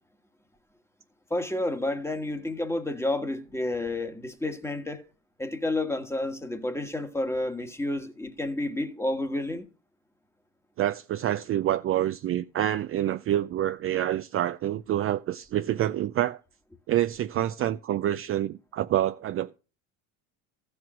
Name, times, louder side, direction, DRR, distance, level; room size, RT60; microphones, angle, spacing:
voice 1, 1.3-5.0 5.4-9.7, left 1 dB, 5° left, 1.4 m, -30 dB
voice 2, 10.8-16.4 16.9-19.5, right 12 dB, 40° right, 0.4 m, -27 dB
14.0 x 4.7 x 6.1 m
supercardioid pair, 80°, 37 cm